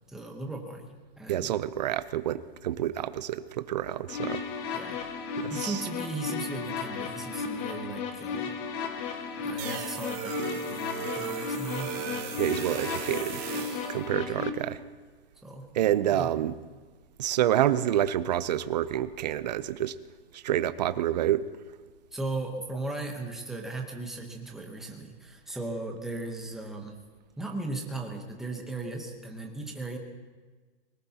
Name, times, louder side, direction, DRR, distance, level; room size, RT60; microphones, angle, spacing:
voice 1, 0.1-0.9 1.2-1.5 4.7-5.0 5.5-8.6 9.0-9.1 9.4-12.3 13.5-14.0 15.4-16.3 22.1-27.0 27.4-30.0, right 2 dB, ahead, 1 dB, 0.9 m, -37 dB
voice 2, 1.3-4.4 5.4-5.8 12.4-13.4 13.9-14.8 15.7-16.6 17.2-20.0 20.3-21.5, right 12 dB, 40° right, 14 dB, 0.6 m, -28 dB
sound 1, 4.1-14.5, left 5 dB, 15° left, 0.5 m, -34 dB
sound 2, 9.6-13.9, right 9 dB, 25° right, 1.1 m, -37 dB
24.5 x 19.0 x 2.9 m, 1.4 s
hypercardioid pair, 165°, 32 cm